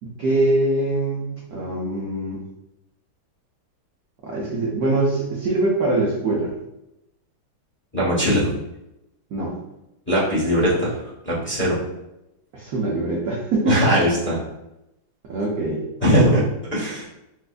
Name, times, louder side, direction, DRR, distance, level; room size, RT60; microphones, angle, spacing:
voice 1, 0.0-2.4 4.2-6.5 9.3-9.5 12.5-13.8 15.3-15.8, right 2 dB, 70° right, -4 dB, 0.9 m, -23 dB
voice 2, 7.9-8.5 10.1-11.0 11.2-11.7 13.6-14.4 16.0-16.4 16.7-17.0, equal, 10° left, -9 dB, 0.6 m, -19 dB
4.2 x 2.4 x 2.4 m, 0.90 s
omnidirectional pair, 2.2 m